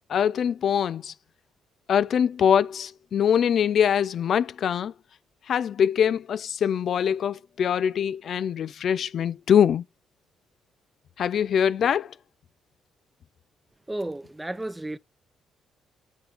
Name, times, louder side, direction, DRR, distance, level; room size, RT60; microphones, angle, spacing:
voice 1, 0.1-1.1 1.9-4.9 5.5-9.8 11.2-12.1, left 8 dB, 60° left, 0.4 m, -23 dB
voice 2, 13.9-15.0, right 1 dB, 10° right, 0.4 m, -32 dB
7.2 x 6.9 x 2.9 m
cardioid pair, 90°, 0 cm